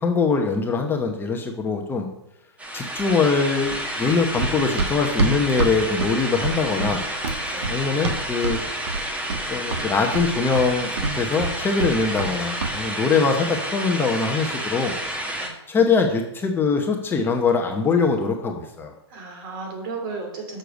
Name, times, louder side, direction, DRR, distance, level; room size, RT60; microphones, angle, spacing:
voice 1, 0.0-2.1 2.7-7.0 7.7-8.6 9.5-14.9 15.7-18.9, left 4 dB, 15° left, 3 dB, 0.8 m, -22 dB
sound 1, 2.6-15.5, right 1 dB, 10° right, 1.2 m, -30 dB
Run, 4.4-8.6 8.9-9.5 9.7-12.3 12.6-12.8, right 3 dB, 75° right, 1.4 m, -26 dB
voice 2, 7.5-7.9 15.4-15.6 19.1-20.6, right 4 dB, 50° right, 3 dB, 2.5 m, -34 dB
6.6 x 6.6 x 5.2 m, 0.82 s
hypercardioid pair, 125°, 14 cm